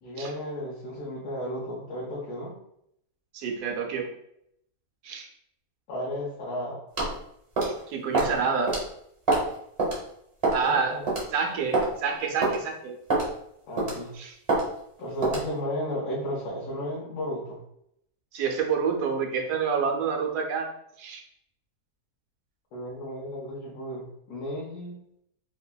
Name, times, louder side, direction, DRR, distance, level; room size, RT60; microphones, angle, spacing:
voice 1, 0.0-2.5 5.9-6.8 10.5-11.0 13.7-14.2 15.0-17.6 22.7-25.0, equal, 75° left, -5 dB, 1.2 m, -34 dB
voice 2, 3.3-4.1 5.0-5.3 7.6-8.8 10.5-11.0 11.3-13.0 14.1-14.4 18.3-20.7 21.0-21.2, right 5 dB, 85° right, 2 dB, 1.1 m, -28 dB
sound 1, 7.0-7.2 7.6-7.8 8.1-8.3 8.7-8.8 9.3-9.5 9.8-10.0 10.4-10.7 11.1-11.2 11.7-11.9 12.4-12.6 13.1-13.3 13.8-14.0 14.5-14.6 15.2-15.5, right 3 dB, 30° right, 0.6 m, -24 dB
3.3 x 2.1 x 2.2 m, 0.75 s
omnidirectional pair, 1.6 m